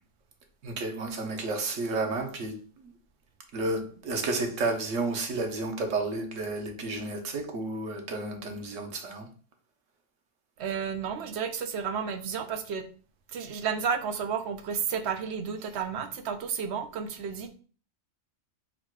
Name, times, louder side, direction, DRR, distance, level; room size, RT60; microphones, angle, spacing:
voice 1, 0.6-2.9 3.5-9.3, right 2 dB, 90° right, 1.2 m, -31 dB
voice 2, 10.6-12.9 13.3-17.5, right 6 dB, 65° right, 0.9 m, -32 dB
4.0 x 2.2 x 4.5 m
omnidirectional pair, 1.3 m